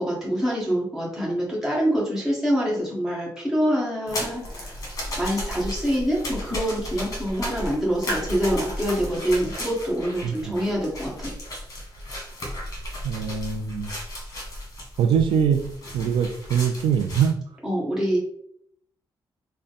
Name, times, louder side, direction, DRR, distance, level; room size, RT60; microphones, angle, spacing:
voice 1, 0.0-4.7 5.2-11.3 17.6-18.2, equal, 5° right, -5 dB, 1.4 m, -25 dB
sound 1, 4.1-17.3, left 1 dB, 45° left, 1.2 m, -34 dB
voice 2, 10.2-10.5 13.0-13.9 15.0-15.7 15.9-17.4, right 7 dB, 85° right, 6 dB, 0.4 m, -23 dB
3.7 x 2.1 x 4.0 m, 0.68 s
wide cardioid pair, 140°, 8 cm